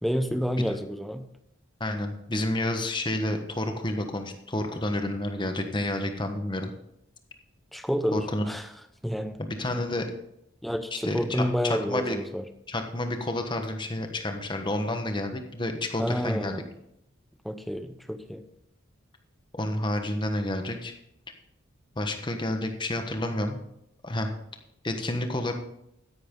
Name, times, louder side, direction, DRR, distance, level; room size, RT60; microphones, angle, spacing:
voice 1, 0.0-1.3 7.7-8.7 9.0-9.4 10.6-12.4 16.0-16.7 17.4-18.4, equal, ahead, 9 dB, 0.7 m, -29 dB
voice 2, 1.8-6.7 8.1-8.5 9.4-10.1 10.9-12.2 12.7-16.5 19.5-20.9 21.9-23.6 24.0-24.3 24.8-25.5, left 1 dB, 25° left, 5 dB, 1.2 m, -30 dB
13.0 x 10.5 x 3.8 m, 0.78 s
head